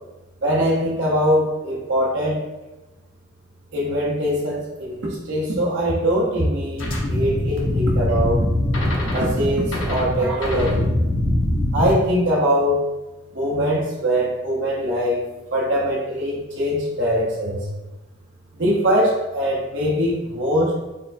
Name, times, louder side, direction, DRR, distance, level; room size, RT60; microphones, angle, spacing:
voice 1, 0.4-2.4 3.7-8.5 9.1-10.9 11.7-12.8 13.3-15.2 15.5-17.6 18.6-20.7, equal, 65° right, -6 dB, 0.8 m, -22 dB
sound 1, 6.8-11.9, left 1 dB, 80° left, 0.9 m, -22 dB
4.2 x 3.6 x 2.6 m, 1.0 s
head